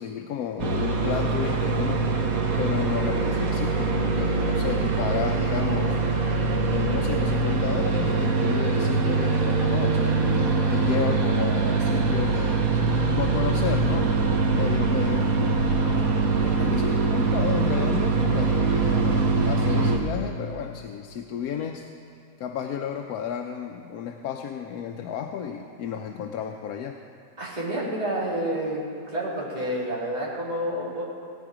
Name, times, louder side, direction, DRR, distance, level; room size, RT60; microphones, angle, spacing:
voice 1, 0.0-2.1 2.6-6.0 6.7-12.8 13.1-15.6 16.4-21.9 22.4-27.0, left 8 dB, 70° left, 3 dB, 1.1 m, -32 dB
sound 1, 0.6-20.0, right 4 dB, 60° right, 1.5 m, -23 dB
voice 2, 27.4-28.8 29.1-31.0, right 1 dB, 25° right, -6 dB, 2.5 m, -29 dB
17.5 x 9.3 x 5.0 m, 2.6 s
omnidirectional pair, 1.7 m